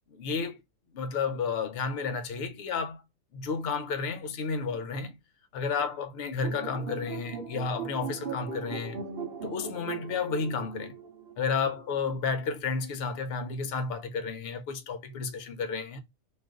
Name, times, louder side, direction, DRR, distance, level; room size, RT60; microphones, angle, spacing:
voice 1, 0.1-0.6 0.9-3.0 3.3-5.2 5.5-9.0 9.4-10.9 11.4-16.0, left 5 dB, 65° left, 0.6 m, -32 dB
sound 1, 6.4-11.8, right 5 dB, 50° right, 0.9 m, -39 dB
2.5 x 2.5 x 3.4 m
omnidirectional pair, 1.5 m